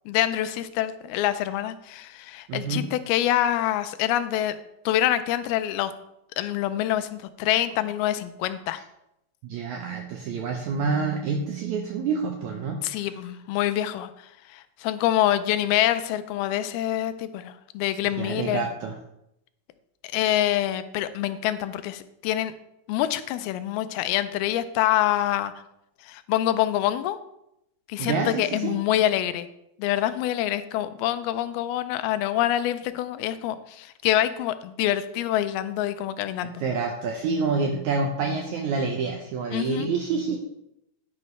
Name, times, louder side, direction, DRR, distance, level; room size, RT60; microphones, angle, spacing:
voice 1, 0.1-4.6 4.9-5.9 6.4-8.8 12.8-14.1 14.5-18.6 20.1-22.5 22.9-25.5 26.1-27.2 27.9-29.5 29.8-36.6 39.5-39.9, left 12 dB, 90° left, 12 dB, 2.5 m, -26 dB
voice 2, 2.5-2.9 9.4-13.1 18.2-19.0 28.0-28.8 36.4-40.4, right 4 dB, 75° right, 3 dB, 1.7 m, -28 dB
9.9 x 9.7 x 3.2 m, 0.83 s
omnidirectional pair, 4.3 m